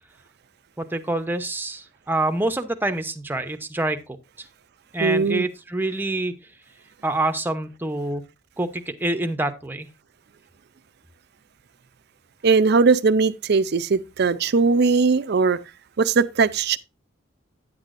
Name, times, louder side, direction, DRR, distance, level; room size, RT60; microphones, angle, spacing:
voice 1, 0.8-4.0 4.9-6.3 7.0-8.2 8.6-9.9, right 2 dB, 10° right, 0.8 m, -26 dB
voice 2, 5.0-5.5 12.4-15.6 16.0-16.8, right 4 dB, 55° right, 0.5 m, -19 dB
9.5 x 8.2 x 2.5 m
head